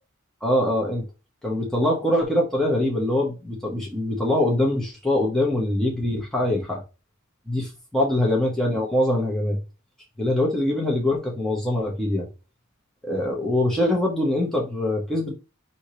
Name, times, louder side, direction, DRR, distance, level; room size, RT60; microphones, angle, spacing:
voice 1, 0.4-1.0 1.4-6.8 7.5-9.6 10.2-12.3 13.0-15.3, left 1 dB, 5° left, -3 dB, 1.1 m, -23 dB
5.4 x 2.9 x 3.1 m, 0.30 s
head